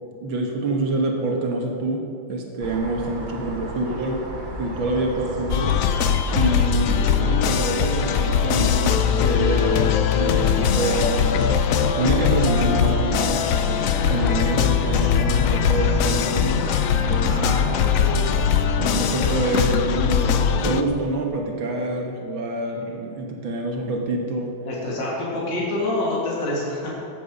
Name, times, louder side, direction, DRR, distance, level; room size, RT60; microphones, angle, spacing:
voice 1, 0.2-4.2 4.6-5.7 6.3-13.4 14.1-16.6 17.0-18.0 18.8-24.6, right 2 dB, 75° right, 1 dB, 2.1 m, -26 dB
sound 1, 2.6-19.5, right 1 dB, 30° right, 1.2 m, -34 dB
sound 2, 5.5-20.8, left 7 dB, 90° left, 0.7 m, -21 dB
voice 2, 17.3-18.2 24.7-26.9, left 2 dB, 65° left, -5 dB, 3.0 m, -27 dB
15.5 x 8.3 x 5.3 m, 2.5 s
omnidirectional pair, 2.1 m